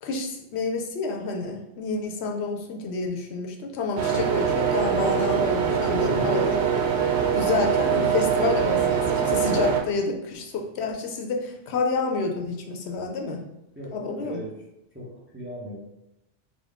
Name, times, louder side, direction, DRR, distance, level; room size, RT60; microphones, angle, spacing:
voice 1, 0.0-6.6 7.3-13.4 13.9-14.4, left 4 dB, 75° left, 2 dB, 0.8 m, -29 dB
sound 1, 4.0-9.8, right 7 dB, 75° right, 0.9 m, -23 dB
voice 2, 6.1-6.4 8.9-9.2 13.7-14.6 14.9-15.8, equal, 15° right, -5 dB, 0.6 m, -39 dB
3.7 x 2.2 x 3.5 m, 0.87 s
omnidirectional pair, 1.1 m